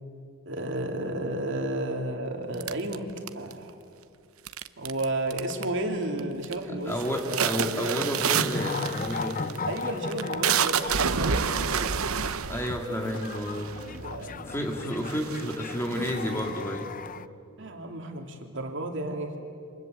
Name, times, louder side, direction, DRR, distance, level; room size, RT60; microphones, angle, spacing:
voice 1, 0.5-3.1 3.3-3.7 4.8-7.0 7.2-7.5 7.8-8.0 9.7-11.6 13.8-14.6 17.6-19.3, right 1 dB, 60° right, 3 dB, 3.0 m, -32 dB
sound 1, 2.6-3.7 4.5-5.0 5.3-5.8 6.2-6.6 6.9-14.0 14.6-14.7 15.0-16.6, right 7 dB, 80° right, 0.9 m, -29 dB
voice 2, 6.7-9.6 12.5-13.8 14.2-16.9, equal, 10° left, 2 dB, 2.5 m, -31 dB
sound 2, 8.3-17.3, left 4 dB, 40° left, 0.6 m, -37 dB
28.0 x 26.0 x 8.1 m, 2.5 s
head